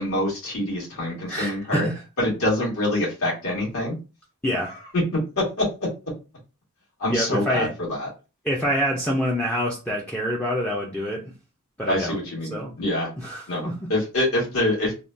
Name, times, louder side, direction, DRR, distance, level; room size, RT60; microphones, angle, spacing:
voice 1, 0.0-1.9 2.2-4.0 4.6-5.7 7.0-8.1 11.9-13.1 13.5-14.9, left 1 dB, 70° left, 1.7 m, -25 dB
voice 2, 1.3-1.9 4.4-4.7 7.1-7.7 8.5-11.3 11.8-12.2 12.5-12.7 13.2-13.8, equal, 5° left, 0.4 m, -26 dB
3.5 x 2.2 x 2.5 m
head